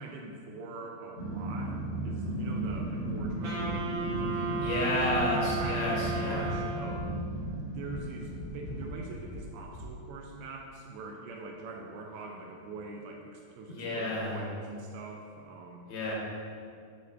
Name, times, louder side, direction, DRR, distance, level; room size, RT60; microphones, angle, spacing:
voice 1, 0.0-5.0 5.6-15.9, right 3 dB, 80° right, 1 dB, 2.3 m, -44 dB
Growling, 1.1-8.8, right 1 dB, 45° left, 1.1 m, -35 dB
sound 1, 2.6-7.6 7.8-10.1, equal, 90° left, 3.8 m, -44 dB
Wind instrument woodwind instrument, 3.4-7.3, right 3 dB, 60° right, 1.3 m, -34 dB
voice 2, 4.6-6.5 13.7-14.4 15.9-16.1, left 1 dB, 70° left, -3 dB, 2.6 m, -31 dB
10.5 x 4.7 x 2.8 m, 2.3 s
omnidirectional pair, 4.7 m